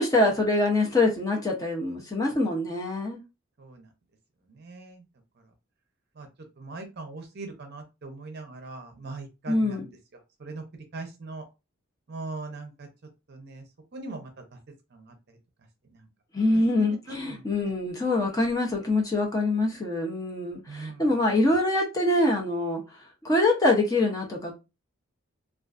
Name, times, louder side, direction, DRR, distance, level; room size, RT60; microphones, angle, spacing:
voice 1, 0.0-3.2 9.5-9.9 16.3-22.8 23.2-24.5, left 2 dB, 15° left, 0.5 m, -24 dB
voice 2, 3.6-3.9 4.5-5.0 6.1-6.3 6.6-10.6 10.9-11.4 12.1-12.9 13.3-13.7 13.9-14.6 14.9-15.4 15.9-16.1 16.5-17.5 20.7-21.1, right 3 dB, 50° right, 0.6 m, -41 dB
2.4 x 2.3 x 2.3 m
head